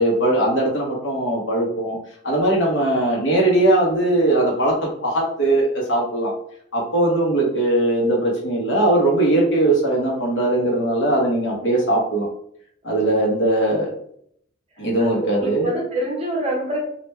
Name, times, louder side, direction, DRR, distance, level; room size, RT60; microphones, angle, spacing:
voice 1, 0.0-2.0 2.2-6.3 6.7-12.3 12.8-13.9 14.8-15.7, right 1 dB, 60° left, -2 dB, 1.0 m, -20 dB
voice 2, 15.1-16.8, right 1 dB, 30° right, -1 dB, 0.9 m, -26 dB
3.3 x 2.5 x 3.2 m, 0.66 s
head